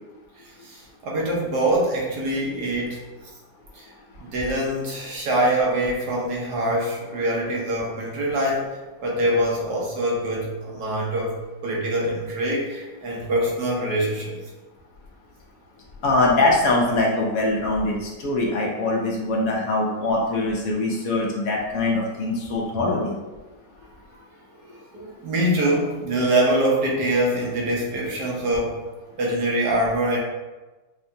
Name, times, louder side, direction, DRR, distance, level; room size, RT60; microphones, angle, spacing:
voice 1, 0.6-3.0 3.7-3.9 4.2-8.7 9.0-11.4 11.6-14.4 24.9-28.8 29.2-30.2, right 1 dB, 85° right, -3 dB, 1.5 m, -24 dB
voice 2, 16.0-23.1, left 2 dB, 65° left, -2 dB, 1.0 m, -22 dB
5.4 x 2.2 x 2.6 m, 1.2 s
omnidirectional pair, 1.8 m